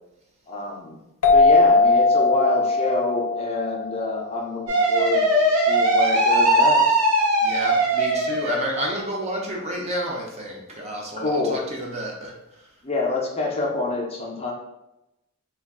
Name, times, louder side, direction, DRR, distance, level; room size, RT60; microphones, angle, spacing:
voice 1, 0.5-1.0 1.3-7.0 11.2-11.6 12.8-14.5, left 3 dB, 25° left, -2 dB, 0.5 m, -27 dB
sound 1, 1.2-4.5, left 3 dB, 90° left, 0.5 m, -19 dB
sound 2, 4.7-8.8, right 1 dB, 80° right, 0.7 m, -19 dB
voice 2, 7.4-12.7, right 1 dB, 30° right, -1 dB, 0.5 m, -30 dB
2.4 x 2.2 x 3.5 m, 0.91 s
head